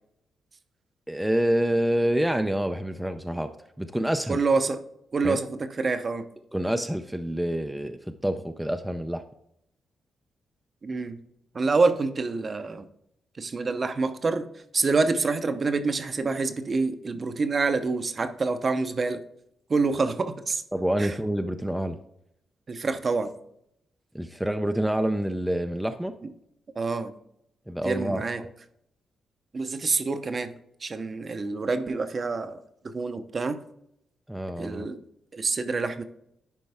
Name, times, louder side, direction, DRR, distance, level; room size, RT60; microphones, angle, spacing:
voice 1, 1.1-3.5 3.8-4.4 5.2-5.4 6.5-9.2 20.7-22.0 24.1-26.2 27.7-28.5 34.3-34.9, right 1 dB, 5° right, 6 dB, 0.4 m, -27 dB
voice 2, 4.3-4.8 5.1-6.3 10.8-11.2 11.5-12.9 13.4-14.5 14.7-19.2 19.7-20.6 21.0-21.1 22.7-23.3 26.8-27.1 27.8-28.4 29.5-30.5 30.8-32.6 32.8-33.6 34.6-35.0 35.3-36.0, right 4 dB, 40° right, 10 dB, 0.7 m, -26 dB
10.5 x 4.6 x 3.4 m, 0.76 s
cardioid pair, 100°, 0 cm